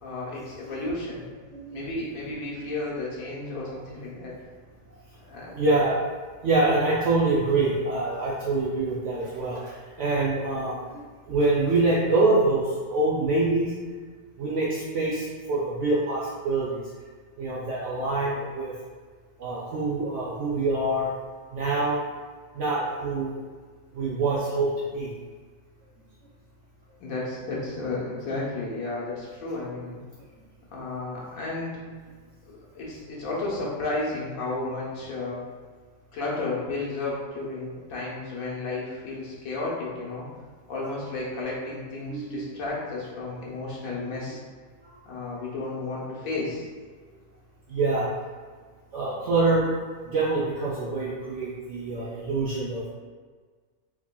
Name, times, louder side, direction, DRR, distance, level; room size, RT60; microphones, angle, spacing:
voice 1, 0.0-1.2 1.7-4.3 5.2-5.5 27.0-30.0 30.7-31.8 32.7-35.4 36.1-40.3 40.7-44.4 45.0-46.7, left 2 dB, 85° left, -5 dB, 1.4 m, -32 dB
voice 2, 1.5-1.8 5.5-6.0 6.4-13.7 14.4-16.8 17.4-18.7 19.4-21.1 21.5-22.0 22.5-23.4 23.9-25.1 42.1-42.4 44.8-45.0 47.0-47.1 47.7-48.1 48.9-49.8 50.1-52.9, right 2 dB, 65° right, -6 dB, 0.9 m, -25 dB
4.7 x 2.8 x 2.2 m, 1.5 s
omnidirectional pair, 1.4 m